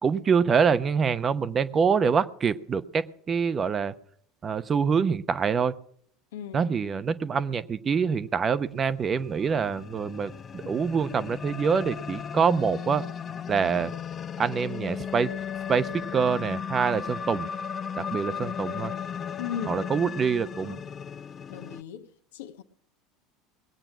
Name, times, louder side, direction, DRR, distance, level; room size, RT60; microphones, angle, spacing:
voice 1, 0.0-3.9 4.4-5.7 6.5-13.0 13.5-13.9 14.4-15.3 15.7-17.5 18.0-18.9 19.7-20.8, right 6 dB, 30° right, 0.8 m, -25 dB
voice 2, 6.3-6.7 10.6-10.7 19.4-19.9 20.7-20.8 21.5-22.1 22.3-22.6, left 9 dB, 75° left, 1.2 m, -36 dB
sound 1, 8.7-21.8, left 7 dB, 35° left, 0.6 m, -36 dB
20.5 x 8.9 x 6.0 m
hypercardioid pair, 75°, 0 cm